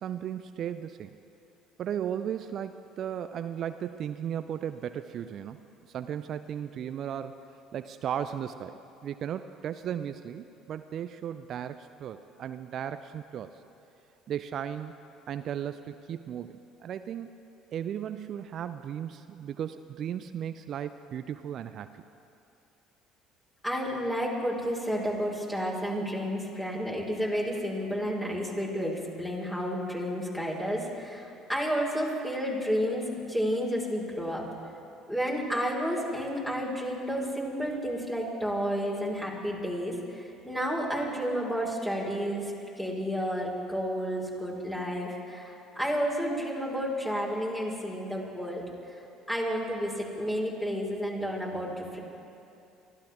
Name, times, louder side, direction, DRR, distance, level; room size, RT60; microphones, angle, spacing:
voice 1, 0.0-1.2 1.8-7.4 7.7-13.6 14.3-14.9 15.3-17.3 17.7-22.0, right 9 dB, 55° right, 11 dB, 0.5 m, -36 dB
voice 2, 23.6-34.4 35.1-48.6 49.3-52.0, equal, 10° left, -3 dB, 4.9 m, -31 dB
24.0 x 15.0 x 3.7 m, 2.7 s
hypercardioid pair, 60°, 0 cm